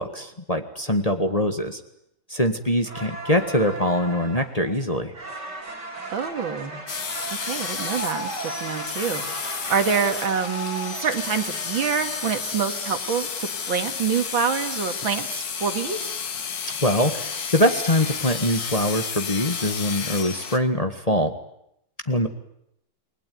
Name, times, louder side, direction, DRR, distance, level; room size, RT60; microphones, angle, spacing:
voice 1, 0.0-1.8 2.3-5.1 16.8-21.4 22.1-22.3, left 1 dB, 20° left, 6 dB, 1.7 m, -23 dB
sound 1, 2.8-12.4, right 2 dB, 55° right, 5.4 m, -36 dB
voice 2, 6.1-6.8 7.3-16.0, right 6 dB, 75° right, 8 dB, 2.8 m, -26 dB
sound 2, 6.9-20.6, left 6 dB, 50° left, 1.9 m, -32 dB
29.0 x 21.0 x 9.4 m, 0.78 s
omnidirectional pair, 2.2 m